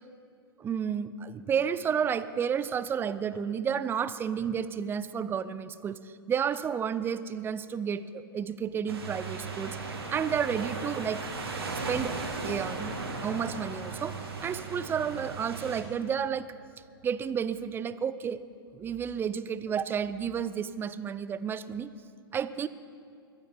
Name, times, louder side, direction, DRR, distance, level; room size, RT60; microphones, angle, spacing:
voice 1, 0.6-9.8 10.1-11.3 11.9-12.2 12.4-16.5 17.0-18.4 18.7-21.9 22.3-22.7, right 7 dB, 15° right, 15 dB, 0.5 m, -31 dB
sound 1, 8.9-15.8, right 3 dB, 85° right, 2.2 m, -36 dB
20.5 x 12.5 x 4.4 m, 2.4 s
hypercardioid pair, 105°, 13 cm